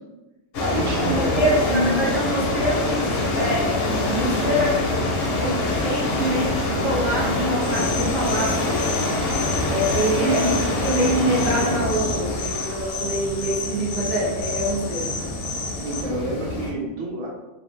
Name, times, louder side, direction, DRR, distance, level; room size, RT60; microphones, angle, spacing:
sound 1, 0.5-16.7, left 2 dB, 60° left, 0.7 m, -25 dB
voice 1, 0.6-2.0 10.2-10.6 15.8-17.3, right 1 dB, 80° right, -2 dB, 1.0 m, -27 dB
voice 2, 1.1-3.1 3.3-4.8 5.4-6.5 6.8-8.8 9.7-10.4 10.8-15.1, right 1 dB, 45° right, -7 dB, 0.6 m, -25 dB
sound 2, 7.6-16.0, left 4 dB, 80° left, 1.0 m, -32 dB
2.5 x 2.1 x 3.1 m, 1.0 s
omnidirectional pair, 1.3 m